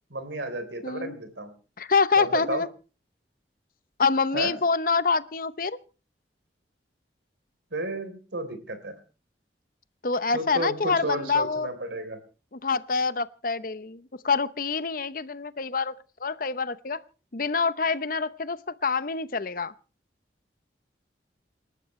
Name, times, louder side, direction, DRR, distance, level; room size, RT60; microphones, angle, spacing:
voice 1, 0.1-1.5 2.2-2.6 4.3-4.6 7.7-8.9 10.3-12.2, right 2 dB, 85° right, 3.7 m, -32 dB
voice 2, 0.8-1.1 1.8-2.7 4.0-5.8 10.0-11.7 12.5-15.9 16.2-17.0 17.3-19.7, left 4 dB, 50° left, 0.8 m, -26 dB
28.5 x 12.0 x 3.2 m
head